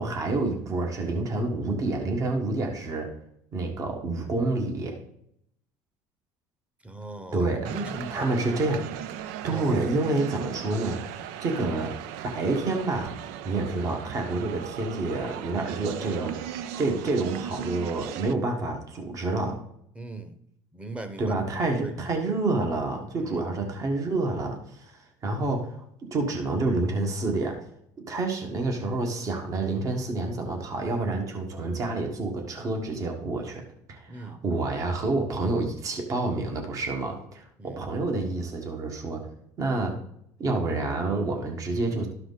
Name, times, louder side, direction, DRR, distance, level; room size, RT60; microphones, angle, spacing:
voice 1, 0.0-3.1 3.5-5.0 7.3-7.7 8.1-8.9 9.4-12.0 12.3-13.2 13.4-16.4 16.8-19.6 21.2-25.8 26.1-27.7 28.1-39.3 39.6-40.0 40.4-42.1, right 2 dB, 40° right, 3 dB, 1.7 m, -28 dB
voice 2, 6.8-8.3 9.4-10.0 19.9-20.3 20.7-21.3 21.8-21.9 23.2-23.5 34.1-34.4 37.6-37.8, right 1 dB, 15° right, 9 dB, 1.1 m, -39 dB
sound 1, 7.6-18.3, right 10 dB, 85° right, 0.5 m, -37 dB
12.5 x 4.8 x 4.1 m, 0.72 s
supercardioid pair, 105°, 8 cm